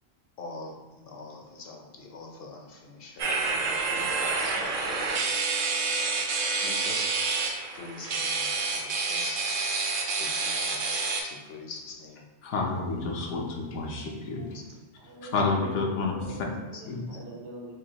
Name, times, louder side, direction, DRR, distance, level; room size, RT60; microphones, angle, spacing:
voice 1, 0.4-4.1 4.4-4.7 5.9-6.1 6.6-7.1 7.7-9.6 10.2-12.2 14.5-14.6 16.7-16.8, left 3 dB, 60° left, 0.8 m, -44 dB
sound 1, 3.2-11.2, right 3 dB, 60° right, 0.6 m, -28 dB
voice 2, 12.4-14.5 15.3-16.5 16.9-17.0, left 3 dB, 85° left, 1.0 m, -29 dB
voice 3, 13.1-14.1 15.0-17.7, right 2 dB, 75° right, 1.0 m, -45 dB
4.8 x 2.2 x 2.8 m
omnidirectional pair, 1.2 m